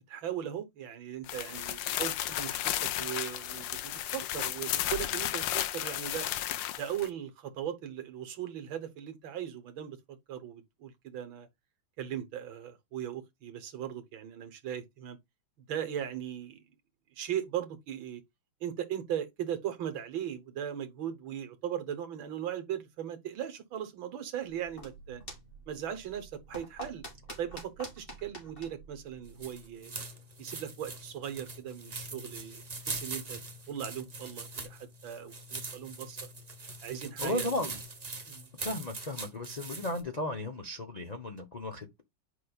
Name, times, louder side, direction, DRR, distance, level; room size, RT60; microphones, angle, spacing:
voice 1, 0.0-6.3 6.8-11.5 12.0-15.2 15.7-16.6 17.2-18.2 18.6-25.2 25.7-27.0 27.4-29.9 30.4-33.4 33.7-36.2 36.8-37.5 38.3-38.5, right 10 dB, 80° right, 1.9 m, -38 dB
sound 1, 1.2-7.1, left 13 dB, 75° left, 1.3 m, -33 dB
sound 2, 24.4-29.8, equal, 25° left, 2.9 m, -48 dB
sound 3, 29.2-40.0, right 3 dB, 35° right, 0.7 m, -42 dB
voice 2, 37.2-37.8 38.6-42.0, left 1 dB, 50° left, 0.4 m, -35 dB
8.4 x 5.0 x 2.3 m
omnidirectional pair, 2.1 m